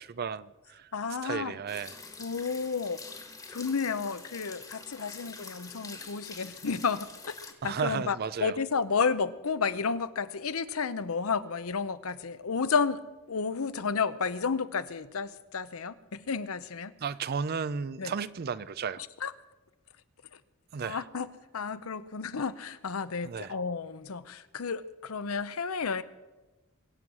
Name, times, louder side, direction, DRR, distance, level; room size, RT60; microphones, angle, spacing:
voice 1, 0.0-0.9 1.2-2.0 7.6-8.6 17.0-19.1 20.7-21.0 23.2-23.5, right 6 dB, 45° right, 0.4 m, -34 dB
voice 2, 0.9-1.6 2.2-3.0 3.5-7.4 7.6-13.0 13.3-16.9 18.0-18.1 19.2-19.3 20.8-21.3 21.5-26.0, left 5 dB, 70° left, 0.7 m, -31 dB
sound 1, 1.7-7.5, left 4 dB, 15° left, 1.4 m, -46 dB
23.5 x 8.0 x 6.1 m
head